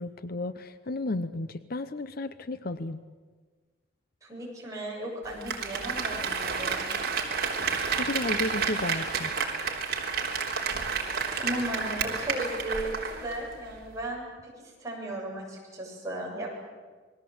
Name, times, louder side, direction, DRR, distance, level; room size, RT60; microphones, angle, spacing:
voice 1, 0.0-3.0 8.0-9.3, left 2 dB, 50° left, 12 dB, 0.8 m, -33 dB
voice 2, 4.2-6.9 11.0-14.5 14.8-16.5, right 1 dB, 15° right, -3 dB, 7.5 m, -36 dB
Applause, 5.3-13.5 13.8-13.9, right 5 dB, 50° right, 3.4 m, -30 dB
28.0 x 21.0 x 7.9 m, 1.4 s
head